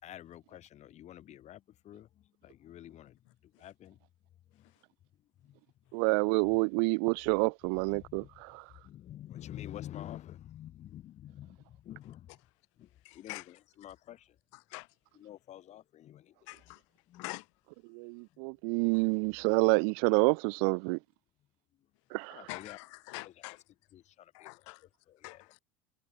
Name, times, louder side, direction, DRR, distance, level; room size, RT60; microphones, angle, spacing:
voice 1, 0.0-4.0 4.5-4.8 5.2-5.9 6.5-6.6 7.3-7.4 7.9-8.3 8.7-12.4 12.8-14.4 15.1-16.7 17.1-17.4 18.3-18.4 22.3-22.8 23.1-23.3 23.9-24.7 25.1-25.5, left 12 dB, 40° left, 3.8 m, -49 dB
voice 2, 5.9-8.7 17.9-21.0 22.1-22.4, right 39 dB, 50° right, 0.5 m, -28 dB
voice 3, 13.0-13.5 14.5-14.9 16.5-16.8 17.1-17.4 22.5-23.6 24.3-24.8 25.2-25.6, left 27 dB, 60° left, 3.5 m, -44 dB
figure-of-eight pair, 70°, 18 cm